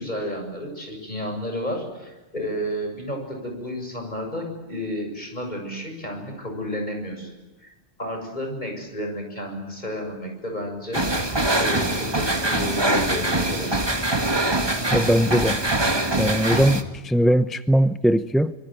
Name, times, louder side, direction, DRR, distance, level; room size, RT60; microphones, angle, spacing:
voice 1, 0.0-7.3 7.6-7.7 8.0-11.0 11.6-13.7, equal, 40° left, 7.8 m, -31 dB
sound 1, 10.9-16.8, right 1 dB, 20° right, 1.9 m, -23 dB
voice 2, 14.9-15.6 16.2-18.5, equal, ahead, 0.6 m, -20 dB
26.0 x 23.0 x 9.4 m
omnidirectional pair, 1.2 m